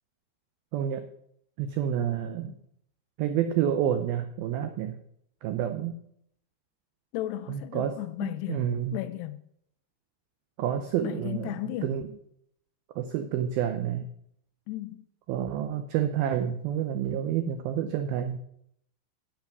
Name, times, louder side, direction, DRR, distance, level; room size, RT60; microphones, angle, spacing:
voice 1, 0.7-1.1 1.6-2.6 3.2-5.0 5.4-5.9 7.5-9.0 10.6-11.5 11.8-12.0 13.0-14.1 15.3-18.4, right 9 dB, 85° right, 2.1 m, -29 dB
voice 2, 7.1-8.7 8.9-9.4 11.0-12.1 14.7-15.1, left 16 dB, 85° left, 2.4 m, -34 dB
12.0 x 8.8 x 6.1 m
omnidirectional pair, 5.4 m